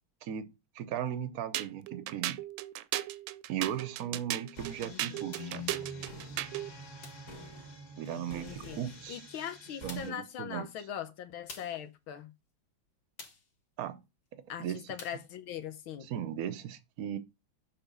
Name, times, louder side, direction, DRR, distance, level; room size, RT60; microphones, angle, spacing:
voice 1, 0.7-2.4 3.5-5.7 8.0-9.2 9.8-10.7 13.8-14.0 14.3-14.9 16.1-17.2, right 10 dB, 60° right, 1.0 m, -37 dB
sound 1, 1.5-6.7, right 14 dB, 80° right, 1.3 m, -36 dB
sound 2, 3.6-3.9 5.3-5.6 7.0-7.3 9.1-9.2 9.9-10.3 11.5-11.9 13.2-13.5 15.0-15.3, left 4 dB, 65° left, 2.0 m, -49 dB
sound 3, 4.5-10.1, left 1 dB, 40° left, 2.1 m, -46 dB
voice 2, 4.8-5.3 8.1-8.8 9.1-12.3 14.5-16.1, left 9 dB, 85° left, 1.8 m, -41 dB
7.0 x 3.9 x 5.5 m
omnidirectional pair, 2.2 m